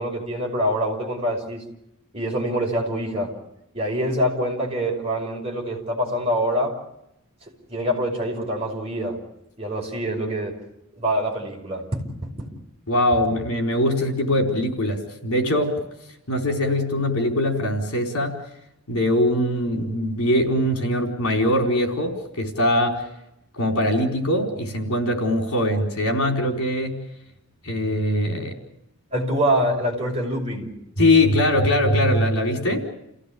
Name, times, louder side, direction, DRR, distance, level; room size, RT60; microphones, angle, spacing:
voice 1, 0.0-1.6 2.1-3.4 3.7-6.8 7.5-9.2 9.6-10.6 10.9-12.5 29.1-30.7, equal, 25° right, -1 dB, 5.3 m, -25 dB
voice 2, 12.9-15.7 16.3-18.3 18.9-23.0 23.6-27.0 27.6-28.5 31.0-32.8, left 1 dB, 80° left, 3 dB, 4.4 m, -22 dB
29.5 x 16.5 x 8.5 m, 0.85 s
head